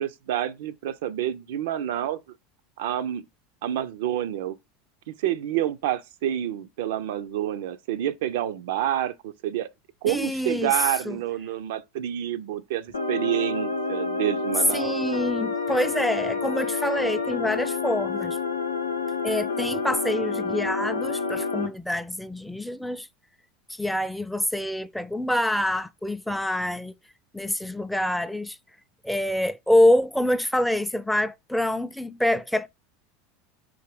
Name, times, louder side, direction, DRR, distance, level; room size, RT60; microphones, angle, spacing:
voice 1, 0.0-2.2 2.8-3.2 3.6-4.6 5.2-9.7 10.0-14.9, right 11 dB, 65° right, 0.4 m, -28 dB
voice 2, 10.1-10.8 11.1-11.2 14.7-18.4 19.2-23.1 23.7-26.9 27.3-28.6 29.0-32.7, left 1 dB, ahead, 0.4 m, -26 dB
sound 1, 12.9-21.7, left 4 dB, 90° left, 0.5 m, -28 dB
3.8 x 2.7 x 4.6 m
figure-of-eight pair, 80°, 0 cm